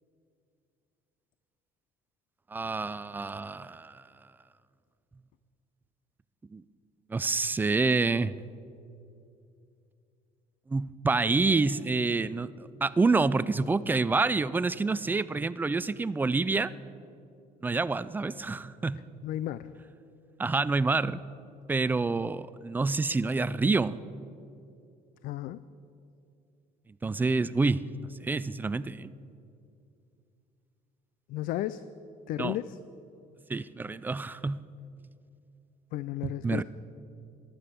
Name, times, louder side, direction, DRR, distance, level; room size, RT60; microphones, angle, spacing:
voice 1, 2.5-4.0 6.5-6.6 7.1-8.3 10.7-16.7 17.6-19.1 20.4-21.2 21.7-24.0 27.0-27.9 28.2-29.1 32.4-32.6 33.5-34.7 36.2-36.6, right 3 dB, 10° right, 16 dB, 0.3 m, -27 dB
voice 2, 19.2-19.7 25.2-25.6 31.3-31.8 32.3-32.8 35.9-36.6, left 14 dB, 70° left, 15 dB, 0.4 m, -33 dB
14.5 x 11.5 x 6.8 m, 2.6 s
cardioid pair, 130°, 15 cm